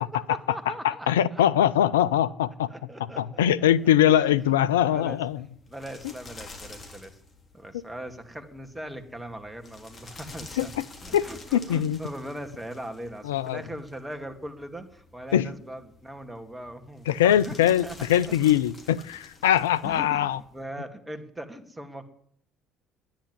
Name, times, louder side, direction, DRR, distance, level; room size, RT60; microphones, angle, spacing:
voice 1, 0.0-1.4 2.7-3.7 4.0-4.4 4.8-5.2 5.7-7.1 7.5-10.7 11.0-18.5 19.8-22.1, right 1 dB, 10° right, 7 dB, 2.3 m, -40 dB
voice 2, 0.7-2.7 3.2-5.4 10.6-10.7 11.1-11.2 11.5-12.0 13.2-13.6 15.3-15.5 17.1-20.4, left 11 dB, 85° left, 16 dB, 0.5 m, -22 dB
sound 1, 3.7-20.6, left 3 dB, 40° left, 3.5 m, -49 dB
10.5 x 10.0 x 9.8 m, 0.67 s
hypercardioid pair, 60°, 0 cm